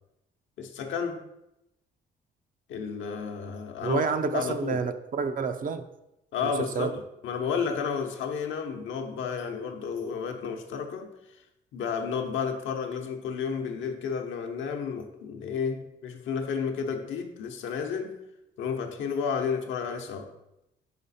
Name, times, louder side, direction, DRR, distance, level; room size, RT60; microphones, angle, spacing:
voice 1, 0.6-1.2 2.7-4.8 6.3-11.1 11.7-18.2 18.6-20.3, left 6 dB, 75° left, 4 dB, 0.8 m, -32 dB
voice 2, 3.8-5.8 6.4-6.9, right 5 dB, 45° right, 9 dB, 0.5 m, -29 dB
5.1 x 4.9 x 4.1 m, 0.89 s
cardioid pair, 90°, 20 cm